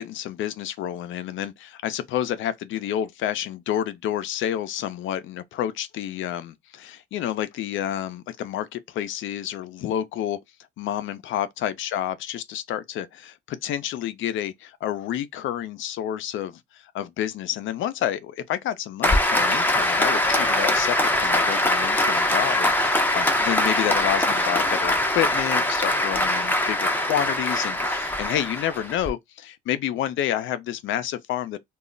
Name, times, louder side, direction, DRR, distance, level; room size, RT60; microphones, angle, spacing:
voice 1, 0.0-10.4 10.8-31.6, left 11 dB, 75° left, 0.5 m, -29 dB
Applause, 19.0-29.1, left 1 dB, 10° left, 0.6 m, -22 dB
2.3 x 2.0 x 3.7 m
cardioid pair, 90°, 20 cm